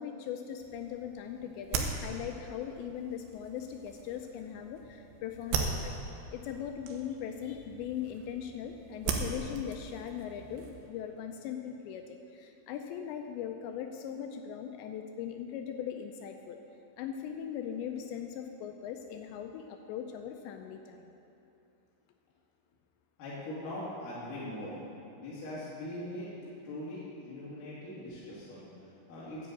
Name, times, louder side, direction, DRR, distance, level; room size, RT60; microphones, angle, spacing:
voice 1, 0.0-5.9 6.3-16.6 17.0-21.1, left 9 dB, 85° left, 5 dB, 2.6 m, -40 dB
sound 1, 0.6-10.9, right 5 dB, 80° right, 3.3 m, -39 dB
voice 2, 23.2-24.8 25.1-26.3 26.6-29.5, left 1 dB, 50° left, -9 dB, 3.4 m, -41 dB
11.0 x 7.9 x 8.1 m, 2.8 s
omnidirectional pair, 5.5 m